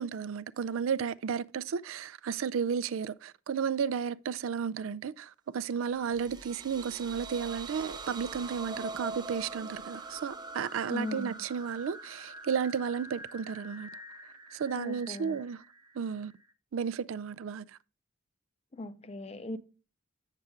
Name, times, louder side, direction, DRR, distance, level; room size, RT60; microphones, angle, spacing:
voice 1, 0.0-13.9 14.5-15.6 16.0-16.3 16.7-17.6, right 6 dB, 80° right, 0.4 m, -33 dB
sound 1, 5.9-16.5, right 3 dB, 20° right, 0.6 m, -44 dB
voice 2, 10.9-11.3 14.7-15.4 18.7-19.6, left 2 dB, 30° left, 0.6 m, -38 dB
8.2 x 6.5 x 3.6 m
head